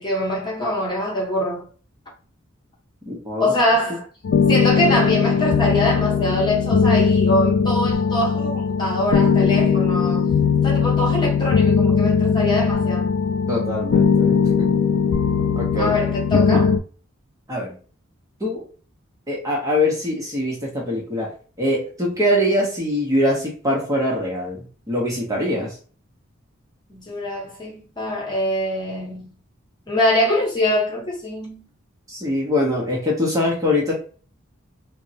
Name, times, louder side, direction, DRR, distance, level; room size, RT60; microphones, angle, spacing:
voice 1, 0.0-1.7 3.4-4.1 4.5-10.3 10.6-13.1 15.8-16.7 26.9-29.3 29.9-31.6, left 1 dB, 20° left, 0.9 m, -23 dB
voice 2, 3.1-3.5 13.5-14.7 15.6-16.0 16.5-16.7 17.5-17.7 18.4-18.6 19.3-21.3 21.6-25.8 32.1-33.9, left 1 dB, 15° right, 0.7 m, -23 dB
sound 1, 4.2-16.8, left 6 dB, 60° left, 0.3 m, -19 dB
3.4 x 2.0 x 2.7 m
head